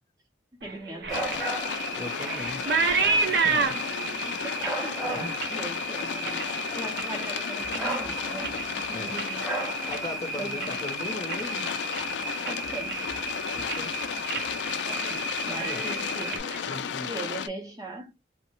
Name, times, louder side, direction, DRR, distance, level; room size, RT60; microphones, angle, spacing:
voice 1, 0.6-1.4 3.5-3.8 4.1-6.5 6.7-9.4 10.4-10.8 12.4-13.0 14.9-15.1 15.5-16.5 17.1-18.1, right 2 dB, 20° right, 0.6 m, -40 dB
sound 1, 0.6-7.3 7.6-8.1 8.4-10.9 11.2-11.6 11.9-12.0 12.5-13.3 13.5-13.9 14.3-14.5 14.8-15.2 15.4-17.3, right 4 dB, 65° right, 0.6 m, -31 dB
sound 2, 1.1-17.5, left 8 dB, 75° left, 0.3 m, -34 dB
sound 3, 1.1-16.4, right 2 dB, ahead, 1.0 m, -35 dB
voice 2, 1.9-2.6 3.2-3.8 5.1-5.4 8.5-8.6 8.9-9.1 9.9-11.7 13.5-13.9 15.1-15.9 16.7-17.1, left 2 dB, 20° left, 0.6 m, -39 dB
3.1 x 2.0 x 3.0 m
head